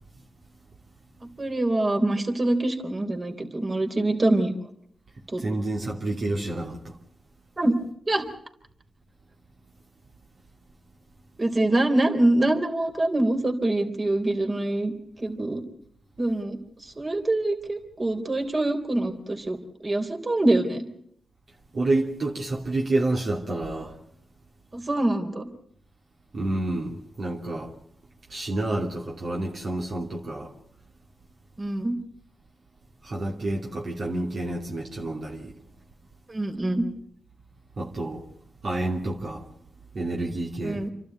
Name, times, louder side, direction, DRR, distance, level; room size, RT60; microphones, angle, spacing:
voice 1, 1.4-4.5 5.3-5.4 7.6-7.7 8.1-8.3 11.4-14.9 15.2-15.6 16.2-16.6 17.0-19.6 19.8-20.8 24.7-25.5 31.6-32.0 36.3-36.9 40.6-40.9, right 1 dB, 40° right, 3.6 m, -24 dB
voice 2, 5.4-7.0 21.7-23.9 26.3-27.7 28.3-30.5 33.0-35.5 37.8-38.2 38.6-39.4 39.9-40.8, right 2 dB, 65° right, 2.9 m, -29 dB
28.0 x 12.0 x 9.3 m
supercardioid pair, 45°, 0 cm